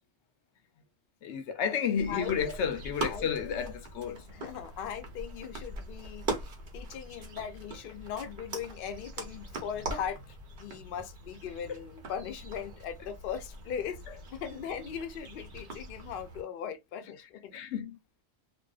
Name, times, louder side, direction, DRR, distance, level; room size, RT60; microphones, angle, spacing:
voice 1, 1.2-4.2 11.7-11.8 17.5-18.0, left 7 dB, 90° left, 0.9 m, -31 dB
sound 1, 2.0-16.4, right 2 dB, 55° right, 0.9 m, -42 dB
voice 2, 2.1-2.6 3.0-3.6 4.3-6.3 6.7-14.0 14.3-17.5, left 8 dB, 65° left, 0.7 m, -39 dB
2.5 x 2.3 x 2.3 m
omnidirectional pair, 1.1 m